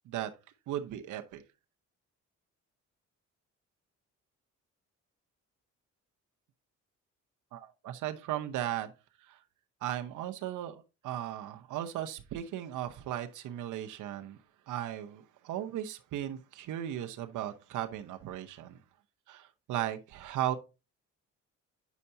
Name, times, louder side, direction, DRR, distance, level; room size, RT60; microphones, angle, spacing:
voice 1, 0.7-1.4 7.5-8.9 9.2-9.4 9.8-14.4 14.7-18.8 19.3-20.6, right 12 dB, 85° right, 0.8 m, -36 dB
8.3 x 5.5 x 2.7 m
cardioid pair, 90°, 30 cm